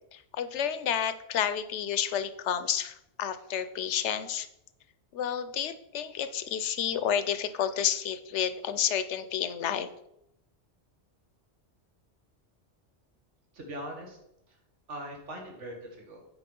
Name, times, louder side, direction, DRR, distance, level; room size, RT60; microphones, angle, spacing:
voice 1, 0.1-4.5 5.1-9.9, left 9 dB, 75° left, 12 dB, 0.9 m, -30 dB
voice 2, 13.5-14.2 14.5-14.6 14.9-16.3, right 1 dB, 80° right, 1 dB, 1.9 m, -41 dB
9.0 x 4.7 x 5.3 m, 0.82 s
omnidirectional pair, 1.2 m